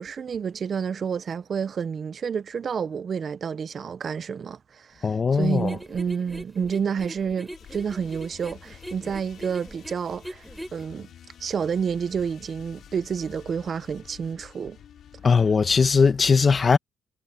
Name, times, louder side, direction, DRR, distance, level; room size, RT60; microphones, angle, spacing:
voice 1, 0.0-10.4 10.7-11.1 11.4-14.8, right 6 dB, 50° right, 0.7 m, -29 dB
voice 2, 5.0-5.7 15.2-16.8, left 5 dB, 40° left, 1.2 m, -19 dB
sound 1, 5.4-10.9, right 1 dB, 5° right, 6.5 m, -41 dB
sound 2, 7.5-16.1, left 9 dB, 65° left, 4.9 m, -49 dB
cardioid pair, 90°, 0 cm